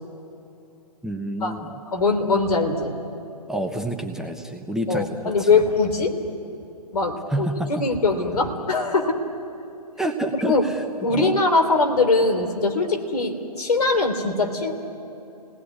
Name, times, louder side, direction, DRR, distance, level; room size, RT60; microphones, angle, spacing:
voice 1, 1.0-1.7 3.5-5.5 7.3-7.8 10.0-10.8 11.1-11.3, right 1 dB, ahead, 3 dB, 0.8 m, -28 dB
voice 2, 1.9-3.0 4.9-6.2 6.9-9.2 10.3-10.7 11.0-14.7, left 3 dB, 65° left, 5 dB, 3.4 m, -22 dB
29.0 x 18.5 x 9.7 m, 2.8 s
figure-of-eight pair, 125°, 21 cm